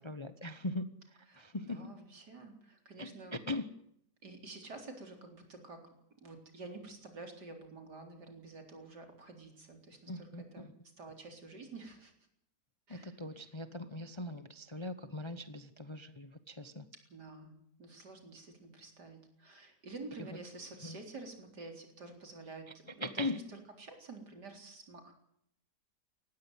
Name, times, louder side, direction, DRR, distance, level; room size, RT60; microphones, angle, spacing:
voice 1, 0.0-1.8 3.0-3.7 10.1-10.7 12.9-16.9 20.3-20.4 20.8-21.0 22.7-22.8 23.0-23.4, left 2 dB, 20° left, 11 dB, 0.8 m, -40 dB
voice 2, 1.3-3.4 4.2-5.8 6.2-10.1 10.5-10.7 11.0-12.1 12.9-13.1 17.1-17.5 17.8-22.7 22.9-23.4 23.8-25.1, right 3 dB, 70° right, 4 dB, 4.5 m, -49 dB
19.0 x 15.5 x 9.2 m, 0.74 s
omnidirectional pair, 1.8 m